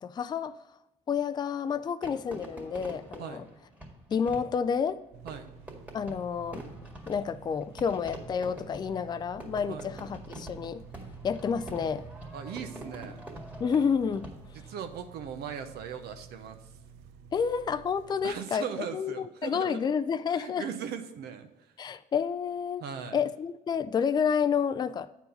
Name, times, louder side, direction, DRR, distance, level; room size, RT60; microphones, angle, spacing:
voice 1, 0.0-0.6 1.1-3.4 4.1-5.0 5.9-6.7 7.1-10.8 11.2-12.1 13.6-14.3 17.3-18.6 18.9-20.7 21.8-22.8 23.1-25.1, left 6 dB, 25° left, 12 dB, 0.4 m, -29 dB
Fireworks, 2.0-14.7, right 1 dB, 10° right, 1.9 m, -46 dB
sound 1, 5.1-18.3, right 6 dB, 90° right, 0.5 m, -49 dB
voice 2, 12.3-13.3 14.5-16.7 18.2-19.8 20.3-21.7 22.8-23.2, right 7 dB, 70° right, 7 dB, 0.8 m, -39 dB
9.2 x 4.6 x 5.4 m, 0.94 s
cardioid pair, 110°, 17 cm